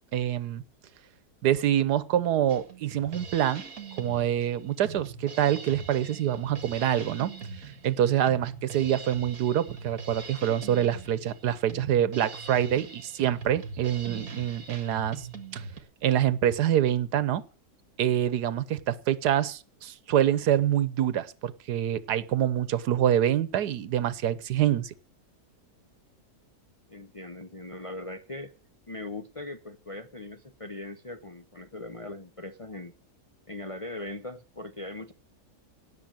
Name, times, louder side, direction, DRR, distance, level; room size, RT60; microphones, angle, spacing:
voice 1, 0.1-0.6 1.4-3.6 4.0-7.3 7.6-15.3 15.5-15.6 16.0-17.4 18.0-24.9, right 11 dB, 85° right, 1.4 m, -26 dB
Drum kit, 2.5-15.8, right 4 dB, 60° right, 2.1 m, -42 dB
voice 2, 26.9-28.5 28.9-32.9 33.5-35.1, left 2 dB, 35° left, 0.6 m, -40 dB
18.0 x 6.8 x 9.0 m
omnidirectional pair, 1.7 m